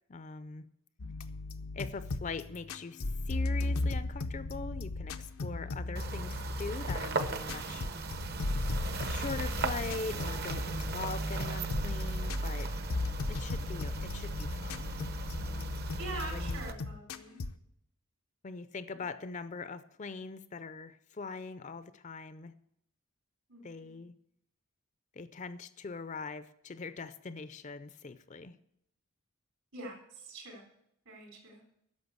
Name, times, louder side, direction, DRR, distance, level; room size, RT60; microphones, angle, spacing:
voice 1, 0.1-0.7 1.7-7.8 9.1-12.7 13.3-14.9 15.3-15.8 16.1-16.6 18.4-22.5 23.6-24.1 25.2-28.6, left 4 dB, 35° left, 14 dB, 0.4 m, -42 dB
sound 1, 1.0-17.5, left 2 dB, 90° left, 0.7 m, -36 dB
sound 2, 6.0-16.7, right 3 dB, 45° right, 0.8 m, -37 dB
voice 2, 16.0-17.4 18.9-19.0 23.5-24.0 29.7-30.6 31.1-31.6, right 2 dB, 75° right, 1 dB, 3.9 m, -44 dB
10.5 x 6.7 x 8.0 m, 0.75 s
head